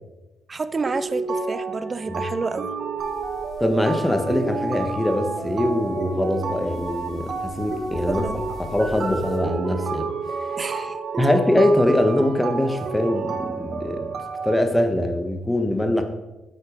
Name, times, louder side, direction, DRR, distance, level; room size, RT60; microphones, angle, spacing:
voice 1, 0.5-2.7 8.1-8.4 10.6-11.0, right 4 dB, 35° right, 0.5 m, -29 dB
sound 1, 0.9-14.6, right 4 dB, 50° right, 1.3 m, -30 dB
sound 2, 3.0-9.4, left 1 dB, 55° left, 3.9 m, -44 dB
voice 2, 3.6-8.2 8.6-10.1 11.2-14.2 14.4-16.0, left 1 dB, 10° left, 1.3 m, -22 dB
9.1 x 8.0 x 5.0 m
cardioid pair, 90°, 0 cm